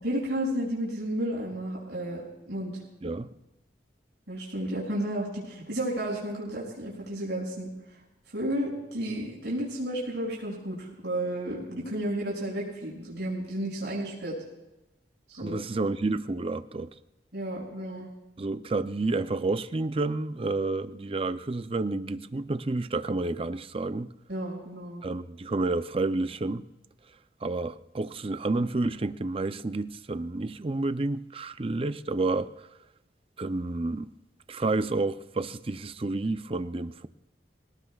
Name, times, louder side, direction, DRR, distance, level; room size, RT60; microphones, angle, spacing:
voice 1, 0.0-2.7 4.3-7.7 8.3-14.3 15.3-15.6 17.3-18.1 24.3-25.0, right 1 dB, 80° right, 6.1 m, -32 dB
voice 2, 15.4-16.9 18.4-24.1 25.0-26.6 27.4-32.5 33.4-34.1 34.5-37.1, right 2 dB, 30° right, 0.5 m, -30 dB
27.0 x 18.0 x 2.4 m
head